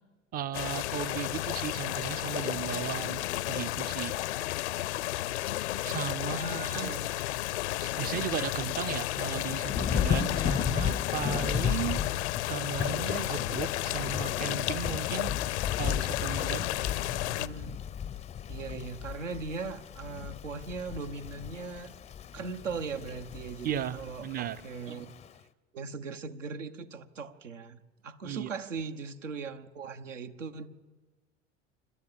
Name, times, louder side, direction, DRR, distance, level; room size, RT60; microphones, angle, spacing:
voice 1, 0.3-4.2 5.8-6.9 7.8-12.0 12.5-15.3 15.8-16.7 23.6-24.6 28.2-28.5, right 10 dB, 25° right, 16 dB, 0.6 m, -36 dB
sound 1, 0.5-17.5, left 16 dB, 60° left, 0.6 m, -33 dB
voice 2, 6.2-7.1 17.4-17.7 18.5-21.9 22.3-25.1 25.7-30.7, right 4 dB, 75° right, 8 dB, 1.2 m, -39 dB
Thunder / Rain, 9.7-25.3, left 9 dB, 15° left, 0.6 m, -35 dB
26.5 x 12.0 x 8.6 m, 1.3 s
figure-of-eight pair, 80°, 38 cm